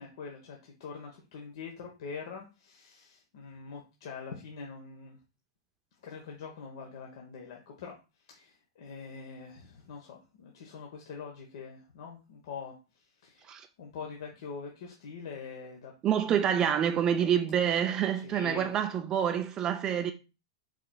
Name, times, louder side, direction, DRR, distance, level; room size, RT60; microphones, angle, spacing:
voice 1, 0.0-5.2 6.0-15.9 18.1-18.7, left 5 dB, 65° left, 1.0 m, -44 dB
voice 2, 16.0-20.1, right 9 dB, 25° right, 0.4 m, -27 dB
4.7 x 4.4 x 2.2 m
hypercardioid pair, 135°, 2 cm